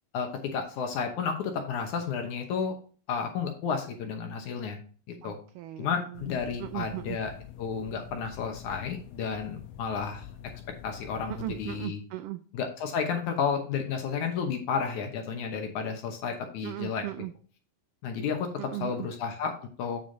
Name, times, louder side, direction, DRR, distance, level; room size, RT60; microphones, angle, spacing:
voice 1, 0.1-2.7 3.1-4.8 5.2-5.4 5.8-7.3 7.6-10.3 10.8-12.0 12.5-17.0 18.0-20.0, left 6 dB, 65° left, 4 dB, 2.1 m, -32 dB
voice 2, 5.2-6.3 6.6-7.2 11.3-12.4 16.6-17.3 18.6-19.1, right 16 dB, 90° right, 10 dB, 1.8 m, -37 dB
sound 1, 6.1-11.8, left 11 dB, 85° left, 2.5 m, -46 dB
8.2 x 6.9 x 2.6 m, 0.40 s
omnidirectional pair, 4.2 m